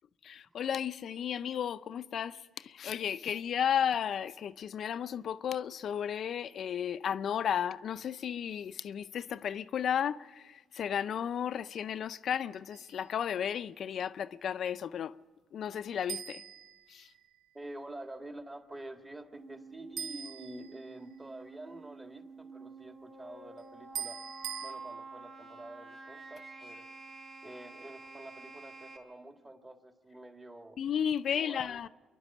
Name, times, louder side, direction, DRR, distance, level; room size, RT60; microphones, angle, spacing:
voice 1, 0.2-15.1 15.5-16.4 16.9-17.1 30.8-31.9, left 8 dB, 65° left, 0.5 m, -34 dB
sound 1, 12.7-13.1 16.1-17.4 20.0-21.2 23.9-24.7, right 9 dB, 80° right, 1.3 m, -42 dB
voice 2, 17.5-24.2 24.6-26.9 27.4-30.8 31.3-31.8, right 1 dB, 20° right, 1.9 m, -47 dB
sound 2, 19.3-29.0, right 3 dB, 45° right, 4.0 m, -49 dB
27.0 x 11.5 x 8.4 m
cardioid pair, 90°, 0 cm